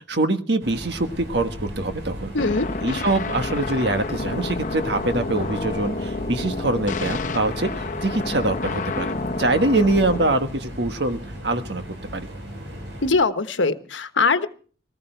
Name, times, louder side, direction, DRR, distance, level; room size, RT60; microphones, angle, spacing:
voice 1, 0.0-2.3 2.8-9.1 9.4-11.8 12.1-12.3, right 2 dB, 65° right, 8 dB, 1.5 m, -24 dB
sound 1, 0.6-13.1, equal, 85° right, 7.3 m, -37 dB
voice 2, 2.3-2.7 13.0-14.5, left 3 dB, 85° left, 10 dB, 1.2 m, -21 dB
sound 2, 2.4-10.4, left 3 dB, 40° left, 0.9 m, -29 dB
19.0 x 15.0 x 4.6 m, 0.42 s
head